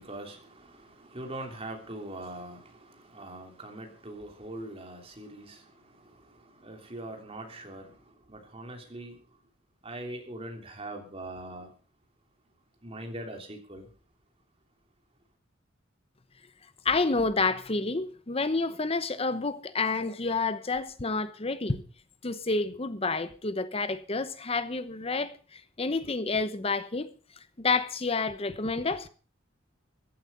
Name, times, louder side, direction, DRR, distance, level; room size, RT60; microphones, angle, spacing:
voice 1, 0.0-9.2 9.8-11.7 12.8-13.9, right 1 dB, 30° right, 3.1 m, -42 dB
voice 2, 16.8-21.8 22.2-27.1 27.6-29.1, left 3 dB, 30° left, 0.9 m, -29 dB
15.0 x 11.5 x 5.4 m
head